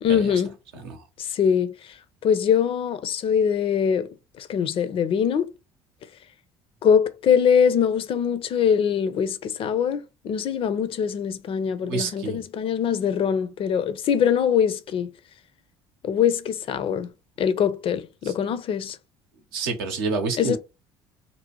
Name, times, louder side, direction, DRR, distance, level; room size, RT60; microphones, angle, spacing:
voice 1, 0.0-0.5 1.2-1.7 2.2-4.1 4.4-5.5 6.8-15.1 16.0-17.1 17.4-19.0 20.4-20.6, left 7 dB, 50° left, 0.4 m, -23 dB
voice 2, 0.7-1.0 11.8-12.4 18.2-18.3 19.5-20.6, right 4 dB, 85° right, 0.7 m, -28 dB
2.7 x 2.0 x 2.8 m
hypercardioid pair, 60°, 12 cm